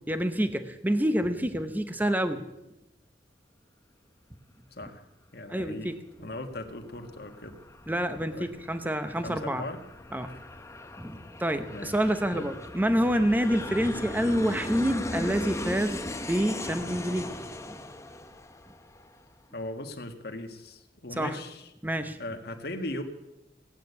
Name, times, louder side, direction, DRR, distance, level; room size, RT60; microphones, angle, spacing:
voice 1, 0.1-2.4 5.5-6.0 7.9-9.6 10.1-10.3 11.0-16.0 16.3-17.3 17.7-17.8 21.1-21.4 21.8-22.2, equal, 10° right, 9 dB, 0.9 m, -27 dB
voice 2, 5.3-5.9 6.2-7.6 8.3-8.5 9.2-9.8 11.7-11.9 12.3-12.5 19.5-21.7 22.2-23.0, left 1 dB, 65° left, 5 dB, 1.8 m, -38 dB
Aircraft, 6.1-19.3, left 1 dB, 15° left, 0.9 m, -39 dB
18.0 x 9.1 x 8.1 m, 0.94 s
head